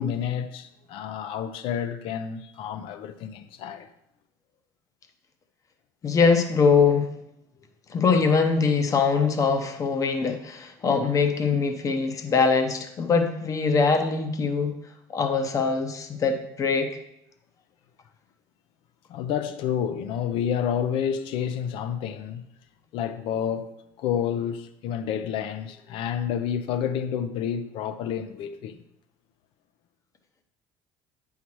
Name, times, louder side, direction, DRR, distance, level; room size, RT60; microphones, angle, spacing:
voice 1, 0.0-3.9 19.1-22.4 22.9-23.7 24.0-28.8, left 8 dB, 65° left, 0.5 m, -29 dB
voice 2, 6.0-7.1 7.9-14.8 15.1-16.9, left 5 dB, 35° left, 0.8 m, -22 dB
8.5 x 5.6 x 3.1 m
supercardioid pair, 100°, 10 cm